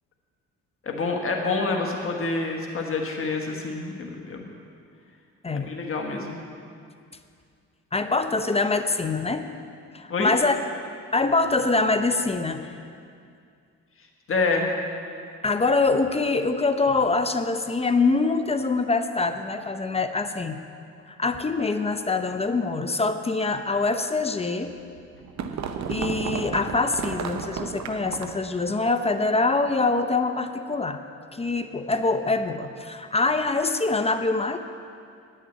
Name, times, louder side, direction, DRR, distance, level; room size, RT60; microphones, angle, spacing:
voice 1, 0.8-4.4 5.5-6.4 10.1-10.3 14.3-14.7, left 3 dB, 45° left, 1 dB, 1.3 m, -27 dB
voice 2, 7.9-9.5 9.9-10.6 11.1-12.6 15.4-20.6 21.2-24.7 25.9-31.0 31.3-34.6, left 3 dB, 20° left, 8 dB, 0.6 m, -24 dB
sound 1, 24.7-28.5, right 6 dB, 65° right, 0.9 m, -32 dB
10.5 x 6.5 x 8.9 m, 2.4 s
cardioid pair, 90°, 30 cm